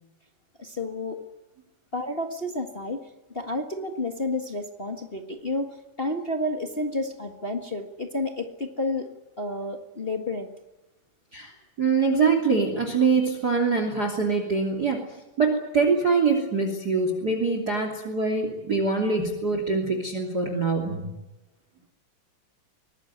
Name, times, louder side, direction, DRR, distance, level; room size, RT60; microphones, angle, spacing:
voice 1, 0.6-1.2 1.9-3.0 3.3-9.1 9.4-10.5, left 2 dB, 30° left, 4 dB, 1.0 m, -30 dB
voice 2, 11.3-15.0 15.4-21.1, right 4 dB, 30° right, 5 dB, 3.2 m, -24 dB
23.5 x 19.5 x 9.5 m, 1.0 s
omnidirectional pair, 3.8 m